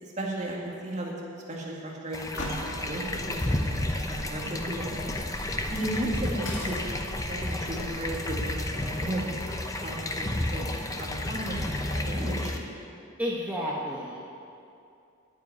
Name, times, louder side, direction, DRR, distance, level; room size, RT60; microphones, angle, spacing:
voice 1, 0.0-1.1 1.5-5.1 5.7-6.8 7.2-10.7 11.0-12.7, right 1 dB, 35° right, -3 dB, 2.2 m, -35 dB
sound 1, 2.1-12.6, left 1 dB, 15° left, 0.8 m, -32 dB
sound 2, 2.3-8.0, left 1 dB, 60° left, 2.0 m, -40 dB
voice 2, 13.2-14.3, equal, 10° right, -6 dB, 1.1 m, -32 dB
9.3 x 8.3 x 9.5 m, 2.6 s
head